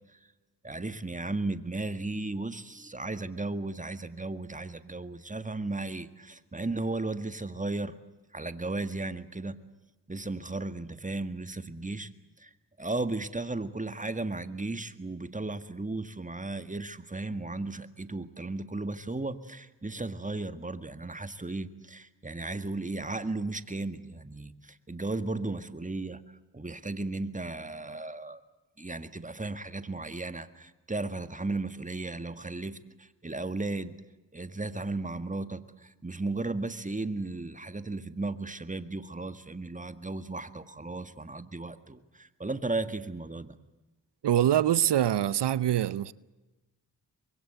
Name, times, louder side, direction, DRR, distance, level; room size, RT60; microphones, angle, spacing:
voice 1, 0.6-8.0 8.3-9.6 10.1-12.1 12.4-12.5 12.8-26.2 26.5-28.4 28.8-34.0 34.3-43.6, right 2 dB, 20° right, 1.9 m, -35 dB
voice 2, 44.2-46.1, right 11 dB, 80° right, 0.8 m, -24 dB
25.0 x 22.5 x 8.1 m
cardioid pair, 50°, 41 cm